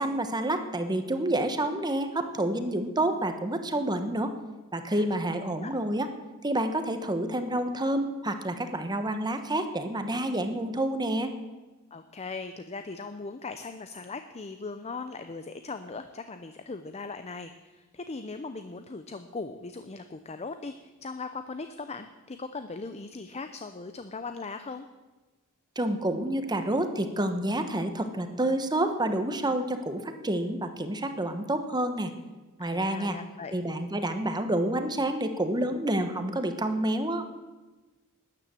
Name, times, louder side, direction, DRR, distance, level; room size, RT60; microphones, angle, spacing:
voice 1, 0.0-4.3 4.7-6.1 6.4-11.3 25.8-32.1 32.6-33.2 33.5-37.3, right 1 dB, 20° right, 8 dB, 1.1 m, -28 dB
voice 2, 4.9-5.7 11.9-24.9 32.6-33.6, left 4 dB, 30° left, 9 dB, 0.6 m, -39 dB
13.0 x 10.0 x 7.6 m, 1.2 s
head